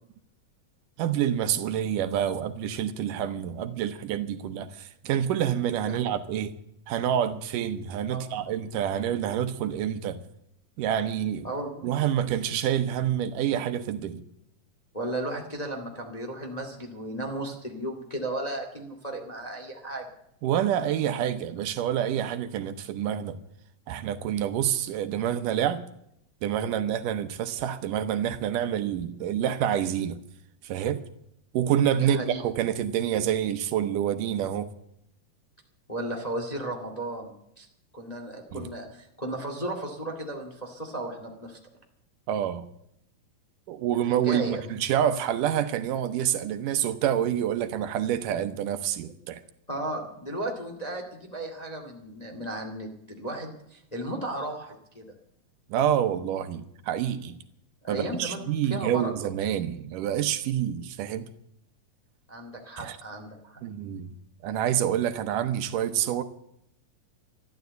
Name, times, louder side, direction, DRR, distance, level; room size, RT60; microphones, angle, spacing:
voice 1, 1.0-6.5 6.9-10.2 10.8-11.5 11.8-14.2 20.4-23.4 23.9-25.8 26.4-30.2 30.6-31.0 31.5-34.7 38.5-38.7 42.3-42.7 43.7-49.4 55.7-57.4 57.9-61.3 62.8-63.0 63.6-64.1 64.4-66.2, right 10 dB, 75° right, 2.4 m, -27 dB
voice 2, 11.4-11.9 14.9-20.1 31.9-32.4 35.9-37.3 37.6-37.7 37.9-41.6 44.1-44.6 49.7-55.0 57.8-58.4 58.7-59.3 62.3-63.6, right 1 dB, 15° left, 1.6 m, -35 dB
13.0 x 12.0 x 8.0 m
omnidirectional pair, 3.9 m